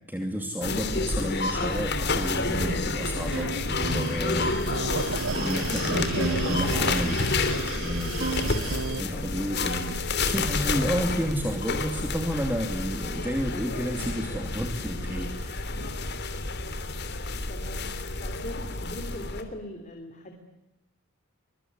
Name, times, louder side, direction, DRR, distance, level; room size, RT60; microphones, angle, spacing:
voice 1, 0.1-4.6 5.3-7.2 7.8-15.8, equal, 10° right, 4 dB, 2.6 m, -31 dB
sound 1, 0.6-19.4, left 3 dB, 55° left, 3.2 m, -29 dB
sound 2, 3.0-9.0, right 5 dB, 70° right, 0.9 m, -33 dB
voice 2, 17.5-20.3, left 1 dB, 35° left, 4 dB, 3.7 m, -40 dB
24.5 x 22.5 x 9.7 m, 0.95 s
head